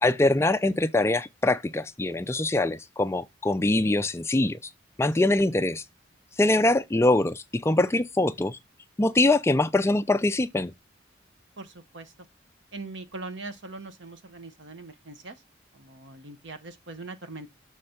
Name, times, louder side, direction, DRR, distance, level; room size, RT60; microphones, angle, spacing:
voice 1, 0.0-4.7 5.0-5.8 6.4-8.6 9.0-10.7, left 2 dB, 15° left, 0.3 m, -23 dB
voice 2, 11.6-12.1 12.7-15.4 15.7-17.5, right 3 dB, 80° right, 1.0 m, -41 dB
6.5 x 3.3 x 5.7 m
head